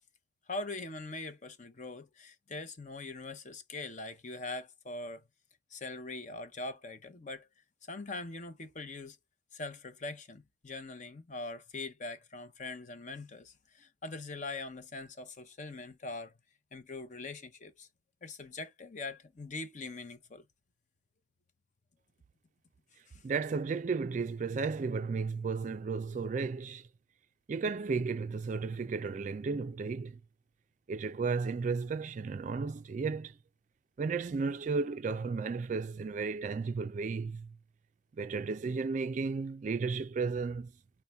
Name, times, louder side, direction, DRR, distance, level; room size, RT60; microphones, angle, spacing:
voice 1, 0.5-5.3 5.7-7.5 7.9-9.2 9.5-16.4 16.7-17.9 18.2-20.4 23.1-23.2, left 3 dB, 40° left, 0.7 m, -42 dB
voice 2, 23.2-26.9 27.5-30.2 30.9-33.4 34.0-37.6 38.2-40.7, right 4 dB, 40° right, 0.3 m, -34 dB
5.6 x 2.2 x 3.4 m
head